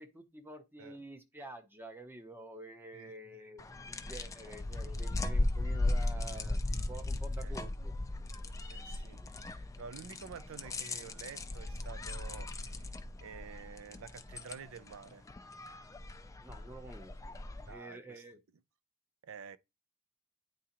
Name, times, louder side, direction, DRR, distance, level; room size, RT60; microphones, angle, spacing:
voice 1, 0.0-8.0 16.4-17.4 17.7-18.4, right 1 dB, 10° right, 0.7 m, -49 dB
sound 1, 3.6-17.7, left 2 dB, 15° left, 0.4 m, -37 dB
voice 2, 8.7-12.9 13.2-15.3 17.7-18.2 19.2-19.6, right 6 dB, 65° right, 0.4 m, -49 dB
9.3 x 3.6 x 2.9 m
head